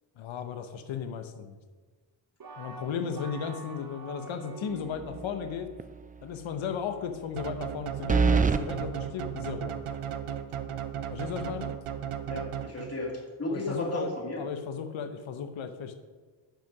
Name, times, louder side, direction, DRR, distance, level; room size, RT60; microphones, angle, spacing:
voice 1, 0.2-1.6 2.6-5.7 6.2-9.7 11.1-11.8 13.5-14.1 14.4-15.9, left 7 dB, 70° left, 8 dB, 0.9 m, -35 dB
sound 1, 2.4-5.3, right 3 dB, 45° right, 1.2 m, -44 dB
sound 2, 5.0-5.4 5.8-5.9 8.1-8.6, right 5 dB, 20° right, 0.4 m, -23 dB
sound 3, 7.4-13.1, right 9 dB, 80° right, 0.7 m, -36 dB
voice 2, 12.3-14.4, left 1 dB, 30° left, -1 dB, 2.5 m, -34 dB
9.0 x 5.2 x 5.2 m, 1.4 s
cardioid pair, 55°, 49 cm